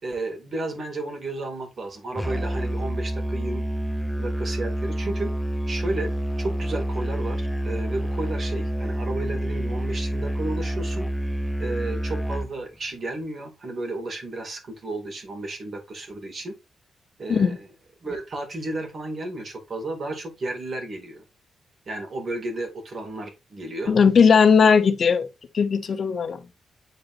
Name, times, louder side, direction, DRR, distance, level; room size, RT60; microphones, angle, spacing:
voice 1, 0.0-3.7 4.2-5.3 5.7-6.1 6.4-11.1 11.6-16.5 17.2-17.7 18.0-21.2 21.9-23.9, right 2 dB, 45° right, 2.1 m, -33 dB
Musical instrument, 2.2-12.5, right 1 dB, ahead, 0.4 m, -28 dB
voice 2, 23.9-25.3 25.5-26.4, left 6 dB, 45° left, 0.7 m, -18 dB
9.4 x 3.9 x 2.6 m
cardioid pair, 130°, 0 cm